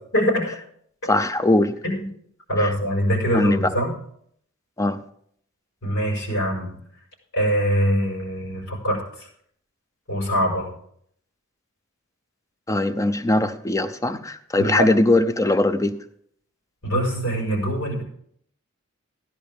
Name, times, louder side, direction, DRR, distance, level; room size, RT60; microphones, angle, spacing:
voice 1, 0.1-0.6 1.8-2.1 2.5-3.9 5.8-6.8 7.3-9.3 10.1-10.7 14.6-14.9 16.8-18.0, equal, 75° left, -1 dB, 5.6 m, -23 dB
voice 2, 1.1-1.8 2.6-2.7 3.3-3.6 4.8-5.0 12.7-16.0, left 2 dB, 15° left, 11 dB, 0.7 m, -20 dB
15.0 x 10.5 x 3.6 m, 0.65 s
head